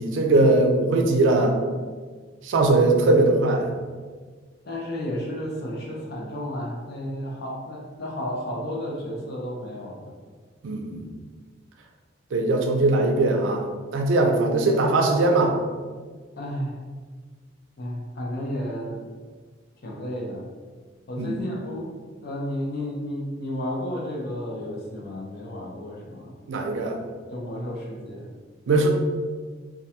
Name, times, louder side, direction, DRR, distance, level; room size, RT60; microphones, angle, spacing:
voice 1, 0.0-1.6 2.4-3.7 10.6-11.0 12.3-13.7 13.9-15.6 21.2-21.3 26.5-27.0 28.7-28.9, right 2 dB, 75° right, 3 dB, 0.4 m, -20 dB
voice 2, 4.6-10.1 16.4-16.8 17.8-19.1 19.8-20.4 21.1-21.9 22.2-26.3 27.3-28.3, equal, 55° left, -2 dB, 0.6 m, -32 dB
2.3 x 2.2 x 2.8 m, 1.5 s
head